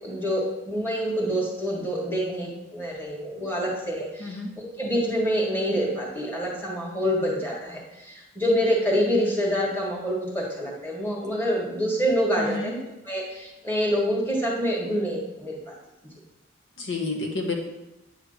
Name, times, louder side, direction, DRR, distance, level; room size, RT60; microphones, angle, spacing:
voice 1, 0.0-15.8, equal, 10° left, -3 dB, 1.6 m, -26 dB
voice 2, 4.2-4.5 12.4-12.7 16.8-17.6, left 3 dB, 70° left, 1 dB, 1.1 m, -30 dB
9.6 x 3.3 x 6.5 m, 0.96 s
head